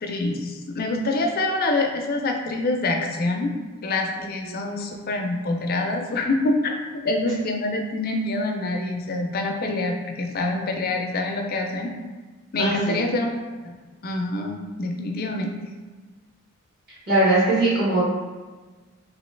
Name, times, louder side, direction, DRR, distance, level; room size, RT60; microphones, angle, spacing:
voice 1, 0.0-3.5 3.8-6.8 7.0-11.9 12.5-13.8 14.0-15.6, left 2 dB, 40° left, 2 dB, 0.4 m, -26 dB
voice 2, 12.6-13.0 17.1-18.1, right 2 dB, 45° right, -9 dB, 1.2 m, -20 dB
3.0 x 2.7 x 3.2 m, 1.3 s
head